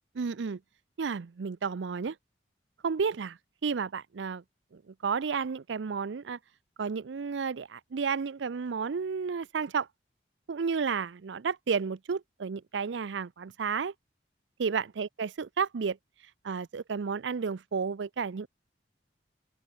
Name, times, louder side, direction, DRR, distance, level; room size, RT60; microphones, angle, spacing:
voice 1, 0.1-0.6 1.0-2.1 2.8-4.4 4.7-6.4 6.8-9.9 10.5-13.9 14.6-16.0 16.4-18.5, right 5 dB, 85° right, 0.5 m, -32 dB
open air
head